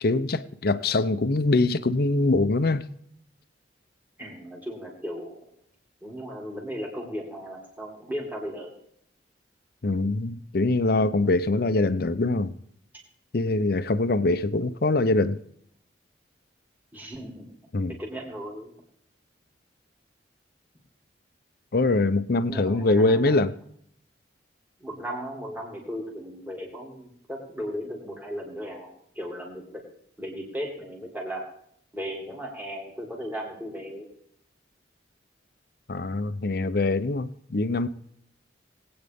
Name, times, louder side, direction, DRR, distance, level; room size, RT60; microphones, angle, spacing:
voice 1, 0.0-2.9 9.8-12.5 13.3-15.4 17.7-18.0 21.7-23.5 35.9-37.9, left 2 dB, 55° left, 0.6 m, -23 dB
voice 2, 4.2-5.4 6.0-8.8 16.9-17.4 18.0-18.7 22.5-23.4 24.8-29.8 30.2-31.4 31.9-34.1, equal, 10° right, 2.7 m, -36 dB
20.5 x 8.8 x 3.6 m
head